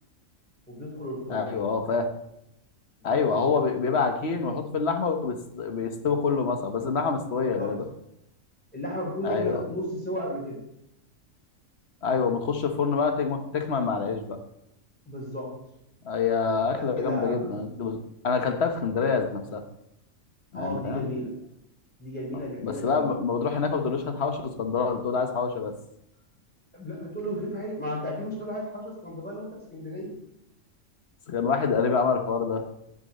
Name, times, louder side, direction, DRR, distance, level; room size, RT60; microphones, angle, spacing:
voice 1, 0.7-1.5 3.0-3.9 7.6-7.8 8.7-10.6 15.1-15.6 16.6-17.5 20.5-21.4 22.0-23.1 26.7-30.2, equal, 5° left, -4 dB, 3.8 m, -34 dB
voice 2, 1.3-2.1 3.0-7.9 9.2-9.6 12.0-14.4 16.0-18.0 18.2-19.6 20.5-21.1 22.6-25.7 31.3-32.6, left 5 dB, 55° left, 6 dB, 1.3 m, -26 dB
10.5 x 7.1 x 4.1 m, 0.79 s
omnidirectional pair, 1.4 m